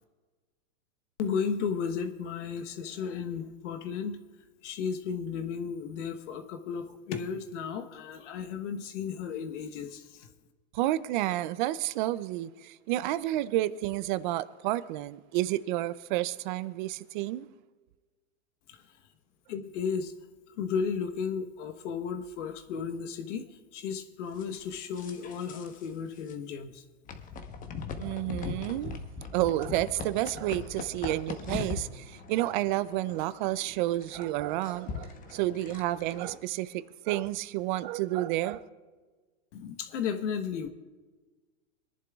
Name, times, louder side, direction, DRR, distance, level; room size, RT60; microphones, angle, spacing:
voice 1, 1.2-4.2 4.6-10.3 18.7-18.8 19.5-20.1 20.6-26.8 39.5-40.7, left 6 dB, 65° left, 1.2 m, -34 dB
voice 2, 10.7-17.5 28.0-29.0 29.3-38.7, right 15 dB, 40° right, 0.5 m, -30 dB
sound 1, 24.4-25.9 26.2-26.3 27.1-36.4, left 5 dB, 20° left, 1.0 m, -41 dB
25.5 x 11.0 x 2.4 m
hypercardioid pair, 135°, 39 cm